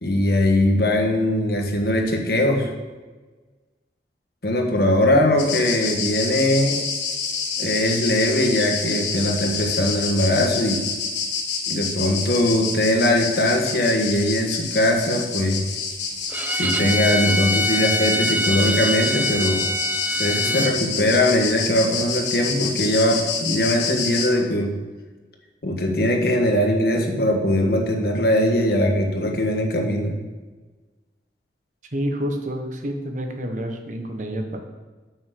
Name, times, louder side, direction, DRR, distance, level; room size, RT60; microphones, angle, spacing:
voice 1, 0.0-2.7 4.4-6.8 7.6-10.8 11.7-15.6 16.5-19.6 20.2-24.7 25.6-30.1, left 1 dB, 60° left, 2 dB, 1.5 m, -21 dB
sound 1, 5.4-24.3, left 5 dB, 85° left, 1.5 m, -28 dB
Bowed string instrument, 16.3-20.8, equal, 10° right, 0.5 m, -24 dB
voice 2, 31.9-34.6, equal, 45° right, 4 dB, 1.2 m, -28 dB
8.8 x 6.2 x 6.8 m, 1.3 s
head